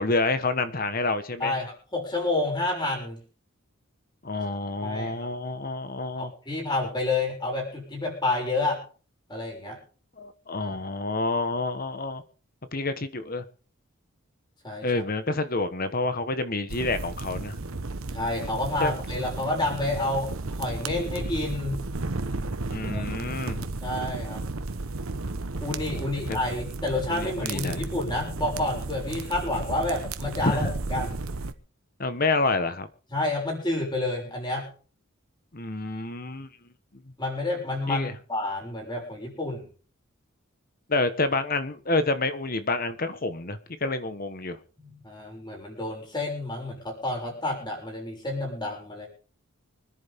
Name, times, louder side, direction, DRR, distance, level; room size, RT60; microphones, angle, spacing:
voice 1, 0.0-1.6 4.2-6.3 10.2-12.2 12.7-13.4 14.8-17.6 18.8-18.9 22.7-23.7 26.3-26.4 27.1-27.9 30.4-30.7 32.0-32.9 35.5-36.5 37.9-38.1 40.9-44.6, left 3 dB, 45° left, 11 dB, 1.3 m, -28 dB
voice 2, 1.4-3.2 4.8-5.2 6.2-8.8 9.3-9.8 14.6-15.0 18.1-21.8 22.8-23.1 23.8-24.4 25.6-31.2 33.1-34.7 37.2-39.7 44.8-49.1, left 2 dB, 20° left, -1 dB, 6.5 m, -29 dB
sound 1, 16.7-31.5, right 3 dB, 90° right, 1.1 m, -33 dB
25.0 x 11.0 x 3.6 m, 0.39 s
head